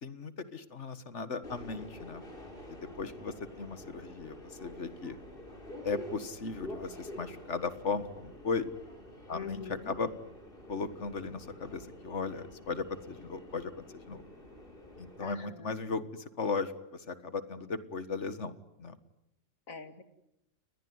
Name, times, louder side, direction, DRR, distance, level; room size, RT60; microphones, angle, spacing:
voice 1, 0.0-2.2 2.7-5.2 5.8-8.7 9.3-10.1 10.7-14.2 15.0-19.0, left 4 dB, 60° left, 12 dB, 1.8 m, -37 dB
Subway metro underground, 1.4-15.3, left 1 dB, 40° left, 5.1 m, -48 dB
voice 2, 9.3-10.0 15.2-15.8 19.7-20.0, left 5 dB, 85° left, 9 dB, 2.6 m, -43 dB
30.0 x 20.5 x 9.6 m, 0.84 s
omnidirectional pair, 1.4 m